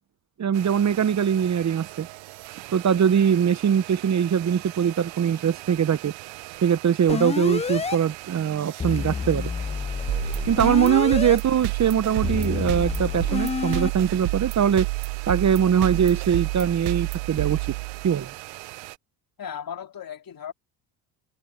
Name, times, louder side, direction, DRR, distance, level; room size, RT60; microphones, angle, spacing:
voice 1, 0.4-2.1 2.7-6.1 6.6-9.5 10.5-14.9 15.3-17.6 18.0-18.3, right 8 dB, 35° right, 1.0 m, -22 dB
sound 1, 0.5-19.0, right 20 dB, 70° right, 1.0 m, -41 dB
sound 2, 7.1-8.0 8.8-11.4 12.2-13.9, left 5 dB, 15° left, 0.5 m, -28 dB
sound 3, 10.1-18.3, right 28 dB, 85° right, 0.5 m, -30 dB
voice 2, 19.4-20.5, left 8 dB, 45° left, 3.6 m, -36 dB
supercardioid pair, 70°, 49 cm